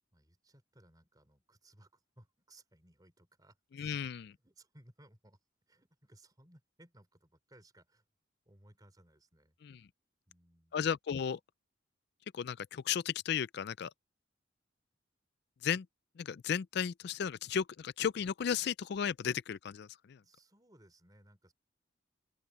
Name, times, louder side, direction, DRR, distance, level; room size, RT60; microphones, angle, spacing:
voice 1, 0.1-4.1 4.4-5.4 5.7-8.0 8.5-9.6 10.3-10.9 20.2-21.5, right 1 dB, 20° right, 4.2 m, -62 dB
voice 2, 3.8-4.3 9.6-9.8 10.7-11.4 12.3-13.9 15.6-15.9 16.2-20.2, left 7 dB, 60° left, 0.4 m, -34 dB
open air
head